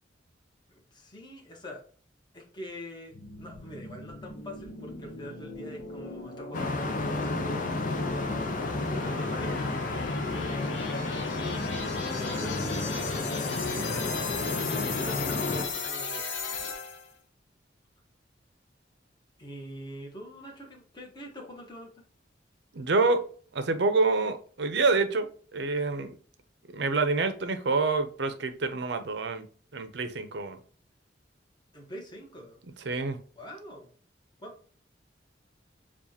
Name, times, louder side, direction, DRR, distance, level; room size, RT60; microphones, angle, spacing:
voice 1, 0.8-1.8 2.3-8.1 8.8-9.6 10.2-11.1 12.1-16.2 19.4-22.0 31.7-32.6 33.3-33.9 34.4-34.5, equal, 25° left, 1.2 m, -44 dB
sound 1, 3.1-17.1, left 4 dB, 85° left, 1.0 m, -37 dB
sound 2, 6.5-15.6, left 3 dB, 50° left, 0.7 m, -31 dB
voice 2, 22.7-23.2 23.5-26.2 26.7-29.5 29.7-30.6 32.8-33.2, right 3 dB, 65° right, 0.6 m, -27 dB
7.1 x 2.4 x 2.8 m
head